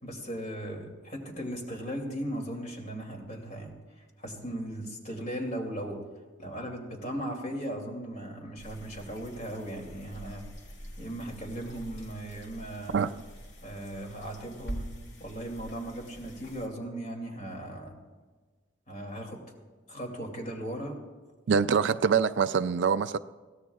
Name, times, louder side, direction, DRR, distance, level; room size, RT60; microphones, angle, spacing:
voice 1, 0.0-3.7 4.2-6.0 6.4-10.4 11.0-13.0 13.6-14.9 15.2-17.9 18.9-19.4 19.9-21.0, right 1 dB, 40° left, 2.7 m, -37 dB
sound 1, 8.6-16.7, equal, 75° left, 2.2 m, -45 dB
voice 2, 21.5-23.2, right 6 dB, 75° right, 0.4 m, -24 dB
22.5 x 17.0 x 2.4 m
head